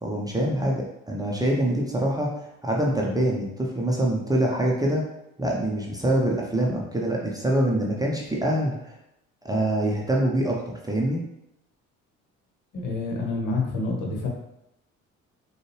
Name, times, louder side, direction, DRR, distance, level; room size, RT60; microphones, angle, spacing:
voice 1, 0.0-5.0 5.4-8.9 9.4-11.2, right 1 dB, 10° right, -3 dB, 0.8 m, -25 dB
voice 2, 12.7-14.3, left 3 dB, 50° left, -1 dB, 1.3 m, -28 dB
6.3 x 2.4 x 3.2 m, 0.84 s
figure-of-eight pair, 50°, 41 cm